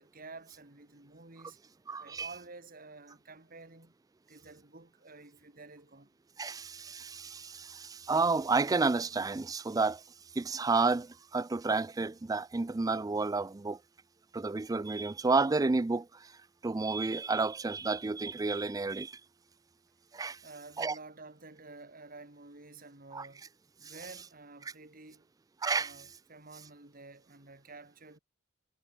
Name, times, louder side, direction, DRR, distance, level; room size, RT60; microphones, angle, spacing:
voice 1, 0.0-1.6 2.0-4.0 4.3-6.1 20.4-23.5 23.8-25.3 25.7-28.2, right 3 dB, 50° right, 3.4 m, -51 dB
voice 2, 1.9-2.3 6.4-10.0 10.4-13.8 14.3-16.3 16.6-19.2 20.1-20.4 20.8-20.9 23.1-23.3 23.8-23.9 25.6-25.9, right 3 dB, 20° right, 0.4 m, -31 dB
head